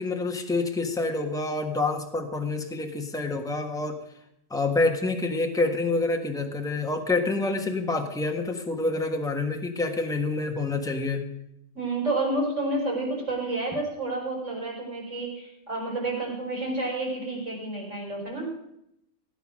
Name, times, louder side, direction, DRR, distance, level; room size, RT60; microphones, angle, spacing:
voice 1, 0.0-4.0 4.5-11.3, left 3 dB, 5° left, 3 dB, 1.3 m, -27 dB
voice 2, 11.8-18.5, right 2 dB, 70° right, -2 dB, 5.3 m, -30 dB
17.0 x 9.4 x 6.3 m, 0.80 s
omnidirectional pair, 1.3 m